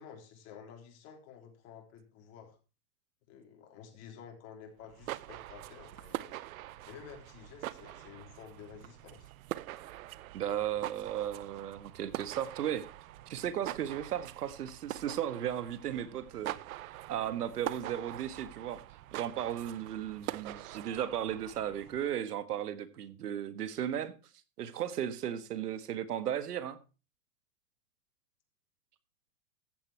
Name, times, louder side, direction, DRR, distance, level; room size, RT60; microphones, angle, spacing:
voice 1, 0.0-2.6 3.3-6.4 6.9-9.3, left 7 dB, 35° left, 3.6 m, -51 dB
sound 1, 4.8-22.2, right 15 dB, 65° right, 0.8 m, -44 dB
voice 2, 10.3-12.9 13.3-16.6 17.1-18.8 19.1-24.1 24.6-26.8, right 10 dB, 85° right, 1.7 m, -35 dB
14.0 x 8.4 x 4.5 m
supercardioid pair, 145°, 45 cm